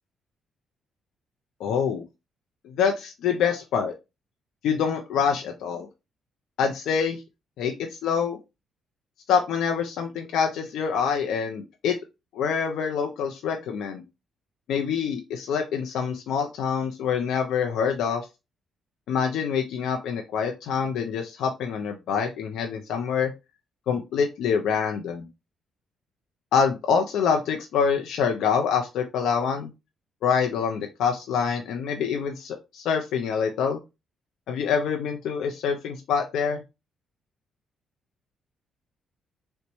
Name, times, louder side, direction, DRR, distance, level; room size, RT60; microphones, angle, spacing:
voice 1, 1.6-2.0 2.6-3.9 4.6-5.9 6.6-7.2 7.6-8.4 9.3-12.0 12.3-14.0 14.7-18.3 19.1-23.3 23.9-25.3 26.5-29.7 30.2-33.8 34.5-36.6, left 6 dB, 80° left, 3 dB, 0.5 m, -26 dB
4.0 x 2.1 x 2.9 m, 0.26 s
cardioid pair, 90°, 0 cm